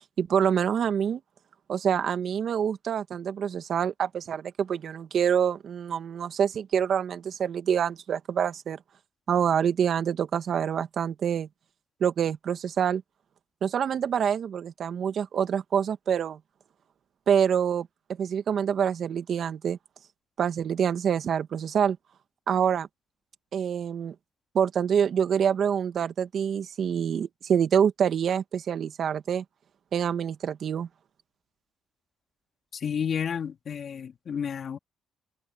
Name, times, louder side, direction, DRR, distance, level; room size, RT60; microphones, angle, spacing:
voice 1, 0.2-1.2 1.7-8.8 9.3-11.5 12.0-13.0 13.6-16.4 17.3-17.9 18.2-19.8 20.4-22.0 22.5-22.9 23.5-24.1 24.5-29.4 29.9-30.9, right 8 dB, 60° right, 1.8 m, -26 dB
voice 2, 32.7-34.8, left 7 dB, 55° left, 3.6 m, -31 dB
cardioid pair, 90°, 0 cm